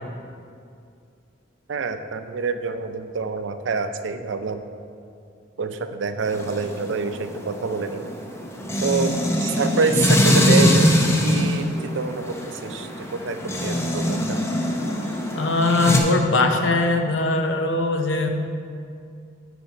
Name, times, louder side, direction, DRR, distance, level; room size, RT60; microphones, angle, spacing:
voice 1, 1.7-4.6 5.6-8.1 8.8-10.9 11.2-14.4, right 4 dB, 80° right, 9 dB, 0.4 m, -27 dB
sound 1, 6.3-16.0, left 1 dB, 15° left, 0.6 m, -22 dB
voice 2, 15.3-18.3, left 2 dB, 85° left, 5 dB, 0.6 m, -21 dB
6.9 x 4.3 x 5.7 m, 2.4 s
head